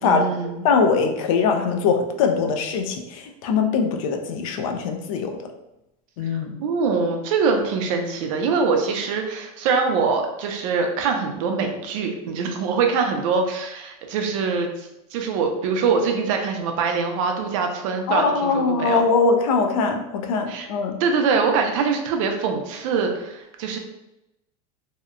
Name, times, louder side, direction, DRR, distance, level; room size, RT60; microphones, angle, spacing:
voice 1, 0.0-0.6 6.3-19.0 20.5-20.7 21.0-23.8, right 5 dB, 55° right, 3 dB, 0.5 m, -23 dB
voice 2, 0.6-5.4 6.2-6.6 18.1-21.0, left 5 dB, 60° left, 4 dB, 0.4 m, -22 dB
2.7 x 2.0 x 2.4 m, 0.89 s
supercardioid pair, 165°, 19 cm